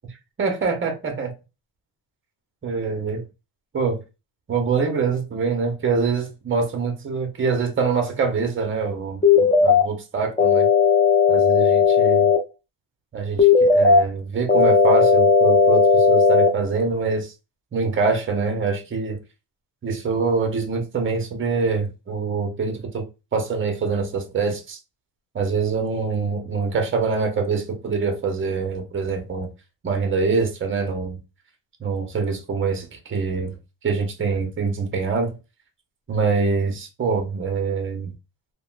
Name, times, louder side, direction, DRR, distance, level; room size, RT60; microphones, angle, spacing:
voice 1, 0.4-1.3 2.6-3.2 3.7-4.0 4.5-10.7 11.3-12.3 13.1-17.3 17.7-19.2 19.8-23.1 23.3-24.8 25.3-29.5 29.8-31.2 31.8-33.6 33.8-35.3 36.1-38.1, right 4 dB, 25° right, 0.8 m, -24 dB
sound 1, 9.2-9.8 10.4-12.4 13.4-14.0 14.5-16.5, left 5 dB, 15° left, 0.5 m, -15 dB
3.4 x 2.2 x 2.4 m
cardioid pair, 100°, 48 cm